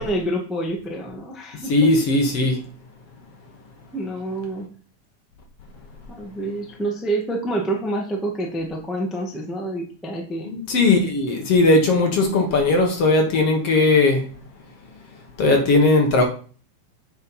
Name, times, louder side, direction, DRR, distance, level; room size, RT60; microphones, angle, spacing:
voice 1, 0.0-1.9 3.9-4.7 6.2-10.5, right 1 dB, ahead, 1.1 m, -27 dB
voice 2, 1.7-2.6 10.5-14.3 15.4-16.2, left 2 dB, 55° left, 2.2 m, -18 dB
9.3 x 5.5 x 5.6 m
omnidirectional pair, 3.6 m